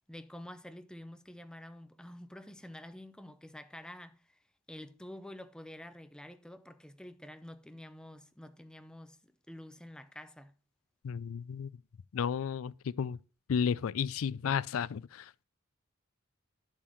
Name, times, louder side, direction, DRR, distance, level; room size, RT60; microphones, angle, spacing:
voice 1, 0.1-4.4 4.7-10.5, left 1 dB, 5° left, 0.6 m, -48 dB
voice 2, 11.0-11.7 12.1-13.2 13.5-15.4, left 7 dB, 85° left, 0.4 m, -33 dB
11.0 x 6.1 x 3.1 m
head